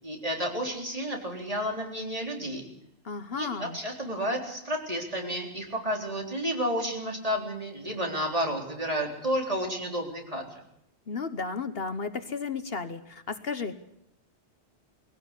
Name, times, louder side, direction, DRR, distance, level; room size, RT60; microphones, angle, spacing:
voice 1, 0.0-2.6 3.4-10.6, equal, 35° right, 0 dB, 4.0 m, -31 dB
voice 2, 3.0-3.8 11.1-13.8, left 4 dB, 60° left, 10 dB, 1.3 m, -33 dB
20.5 x 17.0 x 8.3 m, 0.76 s
omnidirectional pair, 1.1 m